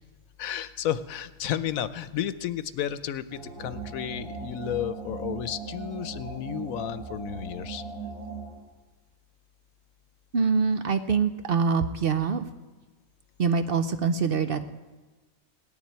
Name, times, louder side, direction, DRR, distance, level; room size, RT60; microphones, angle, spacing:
voice 1, 0.4-7.8, left 10 dB, 90° left, 13 dB, 1.1 m, -32 dB
sound 1, 3.3-8.5, right 4 dB, 70° right, 6.1 m, -38 dB
voice 2, 10.3-12.5 13.4-14.6, right 5 dB, 50° right, 9 dB, 0.8 m, -24 dB
18.0 x 7.3 x 9.3 m, 1.2 s
omnidirectional pair, 1.4 m